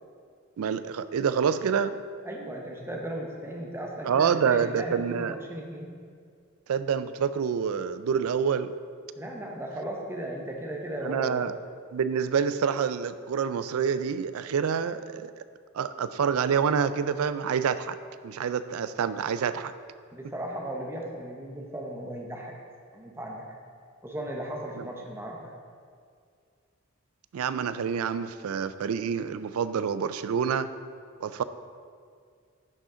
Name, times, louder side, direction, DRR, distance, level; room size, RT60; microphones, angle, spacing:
voice 1, 0.6-2.0 4.0-5.4 6.7-8.7 11.0-11.6 11.9-15.3 15.7-18.0 18.2-19.7 24.8-24.9 27.3-30.7 31.2-31.4, right 7 dB, 80° right, 13 dB, 0.4 m, -27 dB
voice 2, 2.2-6.0 9.2-11.6 20.1-22.6 22.9-23.4 24.0-25.6, right 1 dB, 10° right, -1 dB, 0.8 m, -36 dB
10.5 x 5.1 x 3.7 m, 2.2 s
head